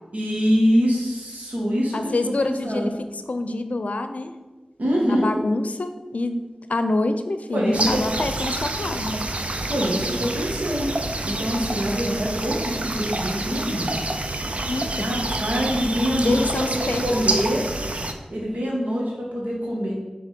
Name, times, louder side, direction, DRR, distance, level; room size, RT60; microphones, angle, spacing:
voice 1, 0.1-2.9 4.8-5.3 7.5-8.0 9.7-10.9 11.2-14.0 15.0-17.7 18.3-19.9, equal, 85° right, -3 dB, 1.8 m, -24 dB
voice 2, 1.9-2.9 3.3-4.3 5.1-6.4 6.7-9.2 14.7-15.1 16.2-17.2, left 2 dB, 75° left, 9 dB, 0.5 m, -26 dB
sound 1, 7.7-18.1, right 2 dB, 55° right, 0.6 m, -28 dB
6.6 x 3.9 x 5.1 m, 1.2 s
wide cardioid pair, 45°, 2 cm